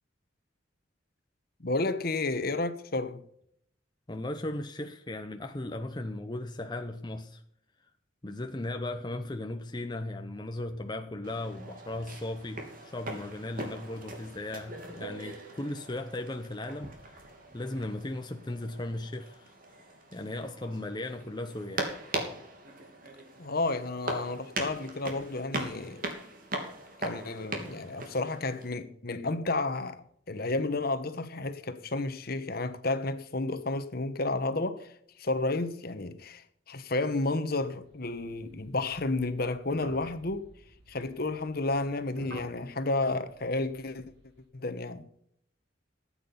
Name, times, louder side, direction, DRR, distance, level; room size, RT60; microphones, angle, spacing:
voice 1, 1.6-3.2 23.4-26.0 27.0-40.5 40.9-44.0 44.5-45.1, left 2 dB, 50° left, 1.2 m, -31 dB
voice 2, 4.1-7.4 8.2-17.2 17.5-19.5 20.1-21.9, left 1 dB, 20° left, 0.8 m, -37 dB
sound 1, 11.2-28.7, right 2 dB, 45° right, 3.0 m, -40 dB
sound 2, 37.8-44.4, right 1 dB, 60° right, 6.6 m, -52 dB
14.5 x 8.9 x 5.6 m
head